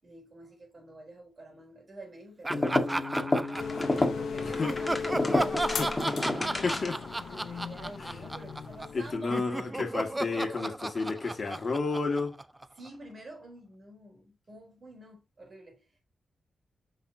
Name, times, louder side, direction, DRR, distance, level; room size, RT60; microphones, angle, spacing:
voice 1, 0.0-3.5 4.1-5.0 5.2-5.6 7.3-9.4 12.7-15.9, right 2 dB, 40° right, 4.1 m, -48 dB
sound 1, 2.4-7.1, left 2 dB, 20° left, 1.7 m, -30 dB
Laughter, 2.4-4.2 4.6-9.0 9.3-12.9, right 2 dB, 15° right, 0.5 m, -34 dB
sound 2, 3.6-9.2, left 6 dB, 90° left, 0.7 m, -37 dB
voice 2, 4.4-4.7 5.8-6.2 6.5-7.0 8.9-12.4, left 3 dB, 45° left, 1.9 m, -31 dB
7.3 x 5.8 x 2.7 m
wide cardioid pair, 110°, 0 cm